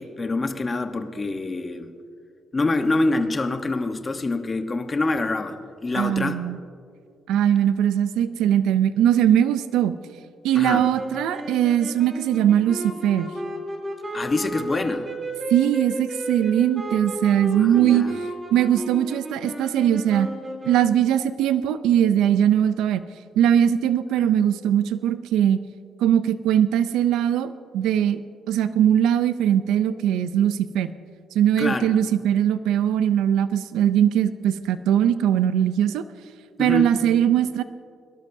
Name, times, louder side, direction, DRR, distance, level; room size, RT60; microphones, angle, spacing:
voice 1, 0.0-1.9 2.5-6.4 10.5-10.9 14.1-15.1 17.5-18.2 24.2-24.3 31.6-31.9 36.6-37.0, left 2 dB, 30° left, 7 dB, 1.0 m, -26 dB
voice 2, 6.0-6.6 7.3-9.9 10.4-13.3 15.5-18.1 18.5-20.3 20.7-23.0 23.4-25.6 26.0-28.2 28.5-30.9 31.3-36.0 36.6-37.6, right 10 dB, 90° right, 13 dB, 0.4 m, -20 dB
sound 1, 10.6-21.1, right 1 dB, 25° right, 2.9 m, -33 dB
23.0 x 12.0 x 2.7 m, 2.3 s
cardioid pair, 90°, 0 cm